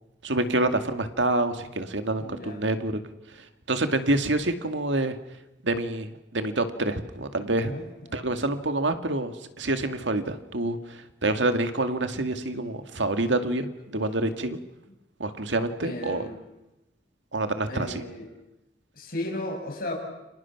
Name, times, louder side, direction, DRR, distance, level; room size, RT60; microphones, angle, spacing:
voice 1, 0.2-2.9 3.3-5.2 5.6-7.7 8.1-14.6 15.2-16.3 17.3-18.0, right 2 dB, 85° right, 8 dB, 2.1 m, -27 dB
voice 2, 2.2-2.6 7.5-8.2 15.8-16.4 17.7-18.3 18.9-19.9, left 1 dB, 50° left, 2 dB, 6.7 m, -35 dB
30.0 x 25.5 x 6.0 m, 0.94 s
head